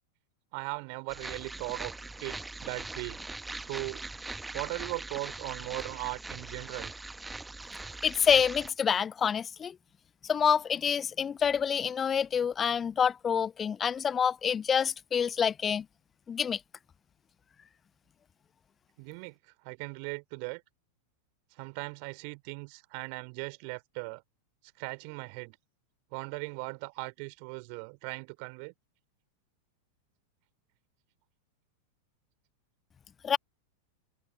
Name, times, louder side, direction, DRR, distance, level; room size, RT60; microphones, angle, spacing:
voice 1, 0.5-1.9 2.2-3.2 3.6-4.1 4.5-6.9 19.0-20.6 21.5-24.2 24.8-25.6 26.1-28.7, right 40 dB or more, 45° right, 3.8 m, -38 dB
sound 1, 1.1-8.7, right 2 dB, 10° right, 0.8 m, -41 dB
voice 2, 8.0-9.8 10.3-15.8 16.3-16.6 33.2-33.4, left 7 dB, 20° left, 0.8 m, -27 dB
figure-of-eight pair, 90°, 0 cm